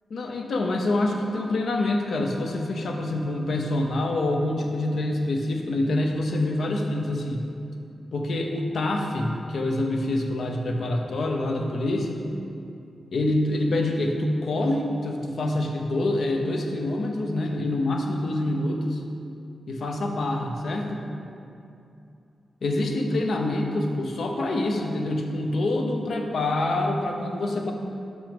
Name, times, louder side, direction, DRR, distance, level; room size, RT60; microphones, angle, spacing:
voice 1, 0.1-7.4 8.1-12.2 13.1-19.0 19.7-21.1 22.6-27.7, left 2 dB, 70° left, 2 dB, 0.7 m, -26 dB
6.0 x 5.2 x 5.2 m, 2.6 s
wide cardioid pair, 115°, 0 cm